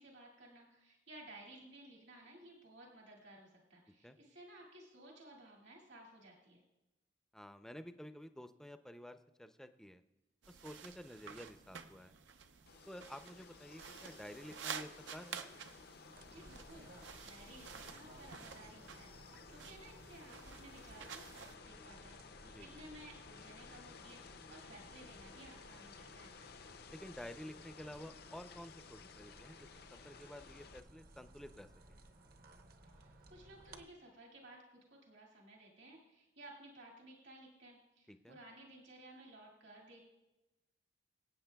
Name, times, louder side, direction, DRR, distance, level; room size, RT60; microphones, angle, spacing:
voice 1, 0.0-6.6 16.2-26.4 32.8-40.1, right 1 dB, 75° right, -2 dB, 2.2 m, -57 dB
voice 2, 7.3-10.0 10.5-12.1 12.9-15.4 22.5-22.7 26.9-29.7 30.0-31.7 38.1-38.4, equal, 5° left, 9 dB, 0.4 m, -51 dB
sound 1, 10.4-21.5, right 7 dB, 90° right, 0.7 m, -51 dB
sound 2, 12.7-30.8, left 6 dB, 60° left, 0.5 m, -57 dB
sound 3, 16.1-33.8, right 1 dB, 55° right, 0.8 m, -60 dB
24.0 x 8.5 x 2.3 m, 0.98 s
head